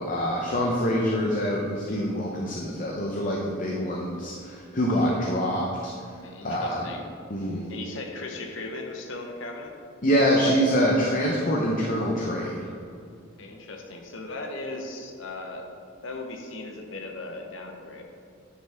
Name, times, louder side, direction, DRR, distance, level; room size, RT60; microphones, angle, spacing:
voice 1, 0.0-5.9 6.4-6.8 7.3-7.6 10.0-12.7, equal, 40° left, -2 dB, 0.7 m, -25 dB
voice 2, 6.2-7.1 7.7-9.7 13.4-15.7 16.0-18.0, left 2 dB, 70° left, 2 dB, 0.8 m, -37 dB
9.9 x 5.5 x 3.4 m, 2.3 s
head